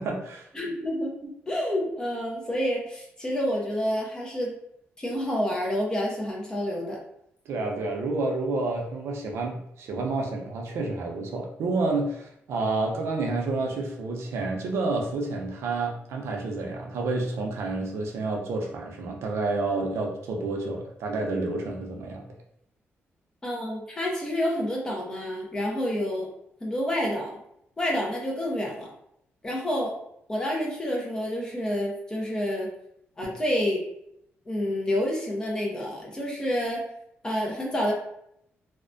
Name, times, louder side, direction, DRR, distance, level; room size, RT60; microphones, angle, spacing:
voice 1, 0.0-0.5 7.5-22.2 33.2-33.3, right 3 dB, 85° right, 1 dB, 0.5 m, -29 dB
voice 2, 0.5-4.5 5.0-7.0 23.4-26.3 26.6-27.4 27.8-28.9 29.4-29.9 30.3-32.7 33.2-33.8 34.5-36.8 37.2-37.9, equal, 15° left, -2 dB, 0.5 m, -28 dB
2.4 x 2.1 x 2.5 m, 0.75 s
wide cardioid pair, 165°, 4 cm